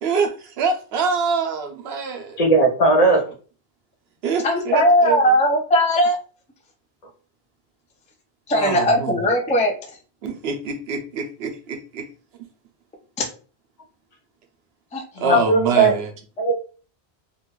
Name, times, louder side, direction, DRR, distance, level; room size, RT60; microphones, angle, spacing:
voice 1, 0.0-2.4 4.2-5.2 8.5-9.2 10.2-12.1 15.2-16.1, right 5 dB, 80° right, 5 dB, 0.9 m, -25 dB
voice 2, 2.4-3.2 15.2-15.9 16.4-16.5, right 2 dB, 40° left, 1 dB, 0.9 m, -17 dB
voice 3, 4.4-6.2 8.5-9.7 13.2-13.3 14.9-15.0, equal, 10° left, 2 dB, 0.3 m, -18 dB
2.9 x 2.3 x 3.0 m, 0.38 s
omnidirectional pair, 1.0 m